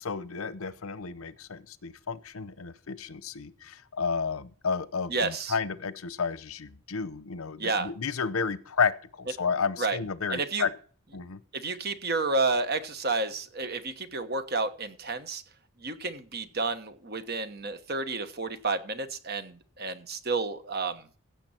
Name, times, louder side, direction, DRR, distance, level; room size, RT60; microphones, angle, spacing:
voice 1, 0.0-10.7 11.1-11.4, left 5 dB, 80° left, 15 dB, 0.8 m, -32 dB
voice 2, 5.1-5.5 7.6-7.9 9.8-10.0 10.3-10.7 11.5-15.4 15.8-21.1, right 3 dB, 50° right, 9 dB, 1.2 m, -30 dB
16.0 x 6.9 x 4.4 m, 0.42 s
head